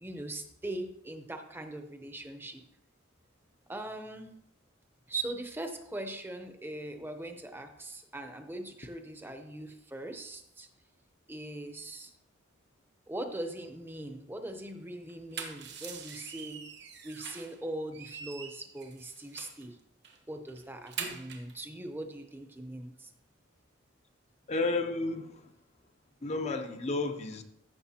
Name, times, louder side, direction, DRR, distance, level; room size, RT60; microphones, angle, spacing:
voice 1, 0.0-2.6 3.7-4.3 5.1-10.7 11.3-12.1 13.1-16.6 17.0-19.8 20.3-23.1, right 2 dB, 10° right, 0.7 m, -40 dB
sound 1, 15.1-17.6 17.9-19.6 20.0-20.2 20.5-21.5, right 6 dB, 55° right, 1.4 m, -43 dB
voice 2, 24.5-25.5 26.2-27.4, left 3 dB, 35° left, 0.5 m, -32 dB
14.0 x 6.7 x 2.9 m
head